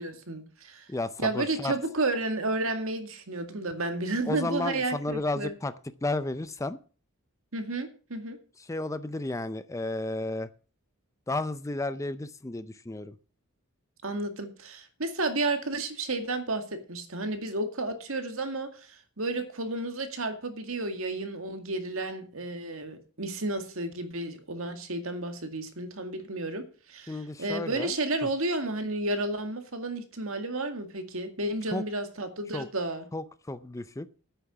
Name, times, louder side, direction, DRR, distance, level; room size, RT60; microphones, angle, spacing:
voice 1, 0.0-0.9 1.2-5.5 7.5-8.4 14.0-16.6 16.9-33.1, right 2 dB, 65° right, 7 dB, 2.0 m, -32 dB
voice 2, 0.9-1.7 4.2-5.7 6.0-6.8 8.6-10.5 11.3-13.2 27.1-27.9 31.7-31.8 32.5-32.7 33.1-34.1, left 2 dB, 15° left, 13 dB, 0.5 m, -32 dB
10.5 x 8.8 x 6.0 m, 0.38 s
head